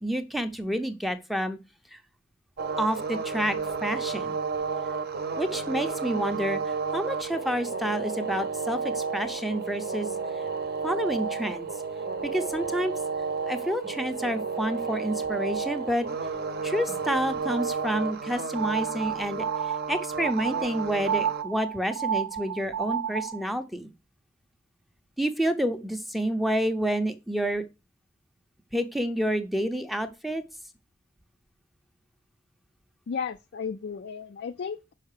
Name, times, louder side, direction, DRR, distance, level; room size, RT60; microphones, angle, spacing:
voice 1, 0.0-1.6 1.9-2.0 2.8-4.4 5.4-10.1 10.8-11.7 12.2-12.9 13.4-16.1 16.6-23.9 25.2-27.6 28.7-30.4, equal, ahead, 0.6 m, -29 dB
sound 1, 2.6-21.4, right 5 dB, 50° right, 0.8 m, -32 dB
sound 2, 18.5-23.4, right 8 dB, 85° right, 0.4 m, -31 dB
voice 2, 33.1-34.9, left 6 dB, 55° left, 0.4 m, -34 dB
5.7 x 5.4 x 6.5 m
head